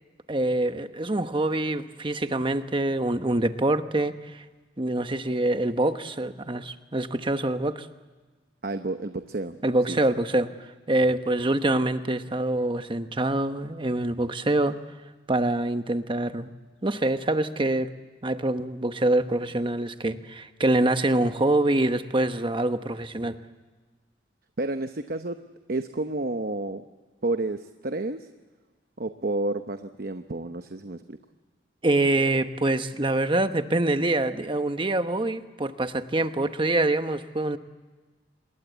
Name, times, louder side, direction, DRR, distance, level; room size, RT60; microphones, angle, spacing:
voice 1, 0.3-4.4 4.8-7.9 9.6-10.5 10.9-14.8 15.3-16.5 16.8-17.9 18.2-23.4 31.8-37.6, right 2 dB, 25° right, 9 dB, 1.1 m, -25 dB
voice 2, 8.6-9.6 9.9-10.0 24.6-25.4 25.7-26.8 27.2-28.3 29.0-31.2, right 2 dB, 55° right, 8 dB, 0.9 m, -30 dB
26.5 x 21.5 x 8.1 m, 1.3 s
head